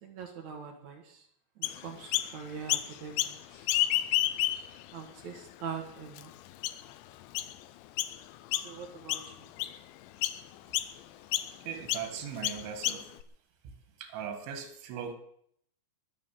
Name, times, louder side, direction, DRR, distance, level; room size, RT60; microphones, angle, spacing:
voice 1, 0.0-1.2 1.6-3.6 4.9-6.3 8.5-9.3, right 6 dB, 60° right, 4 dB, 2.1 m, -43 dB
Chirp tweet, 1.6-2.3 2.7-3.4 3.6-4.8 5.4-5.5 6.2-6.3 6.6-6.9 7.4-7.5 8.0-8.2 8.5-8.8 9.1-9.8 10.2-10.4 10.7-10.9 11.3-11.5 11.9-12.1 12.4-13.2, left 14 dB, 85° left, 3.0 m, -30 dB
voice 2, 11.7-13.1 13.6-13.7 14.0-15.1, right 7 dB, 85° right, 7 dB, 4.2 m, -39 dB
22.0 x 7.4 x 7.6 m, 0.69 s
omnidirectional pair, 5.2 m